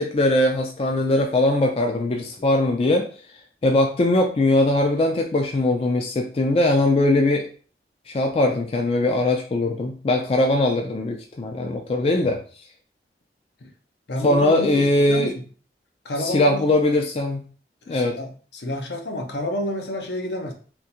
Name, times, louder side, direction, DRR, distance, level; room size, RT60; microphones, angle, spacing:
voice 1, 0.0-3.0 3.6-7.5 8.1-12.4 14.2-15.3 16.2-17.4 17.9-18.2, left 2 dB, 35° left, 2 dB, 0.3 m, -20 dB
voice 2, 14.1-15.4 16.0-16.7 17.9-20.5, left 1 dB, 75° left, 3 dB, 0.7 m, -30 dB
3.5 x 2.5 x 2.8 m, 0.40 s
head